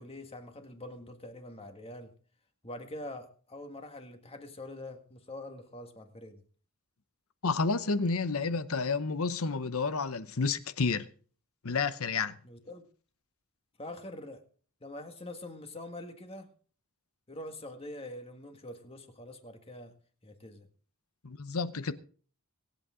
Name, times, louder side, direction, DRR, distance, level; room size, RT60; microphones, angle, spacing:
voice 1, 0.0-2.1 2.6-6.4 12.4-12.9 13.8-14.4 14.8-16.5 17.3-19.9 20.2-20.7, left 1 dB, 25° left, 1.8 m, -44 dB
voice 2, 7.4-11.1 11.6-12.4 21.2-21.9, left 4 dB, 70° left, 0.9 m, -30 dB
25.0 x 8.4 x 3.8 m
head